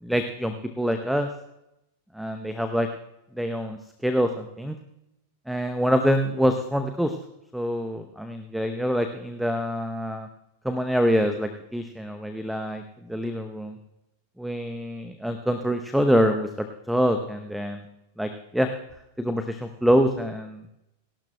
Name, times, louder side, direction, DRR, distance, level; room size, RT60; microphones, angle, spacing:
voice 1, 0.0-1.3 2.1-2.9 3.4-4.8 5.5-7.2 7.5-10.3 10.6-13.8 14.4-17.8 18.2-18.7 19.2-20.7, equal, ahead, 8 dB, 0.7 m, -25 dB
28.5 x 12.0 x 2.2 m, 0.87 s
figure-of-eight pair, 90°, 0 cm